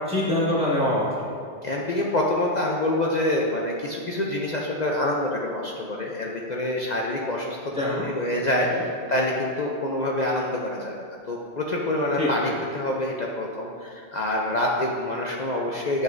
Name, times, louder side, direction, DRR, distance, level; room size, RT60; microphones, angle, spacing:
voice 1, 0.1-1.3 7.7-8.1 8.5-8.8 12.2-12.5, left 1 dB, 5° right, -9 dB, 1.7 m, -25 dB
voice 2, 1.6-8.7 9.1-16.0, left 1 dB, 50° left, -2 dB, 0.6 m, -26 dB
10.5 x 5.4 x 2.6 m, 2.3 s
omnidirectional pair, 1.3 m